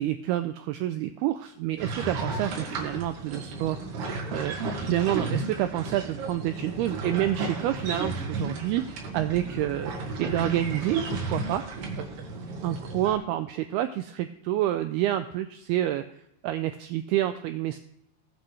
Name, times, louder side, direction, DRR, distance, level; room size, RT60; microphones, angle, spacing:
voice 1, 0.0-3.8 4.3-4.5 4.8-9.9 10.2-11.6 12.0-12.1 12.6-16.1 16.4-17.9, right 13 dB, 90° right, 9 dB, 2.2 m, -28 dB
sound 1, 1.8-13.1, right 3 dB, 70° right, 4.0 m, -33 dB
20.5 x 8.0 x 3.3 m, 0.80 s
omnidirectional pair, 5.1 m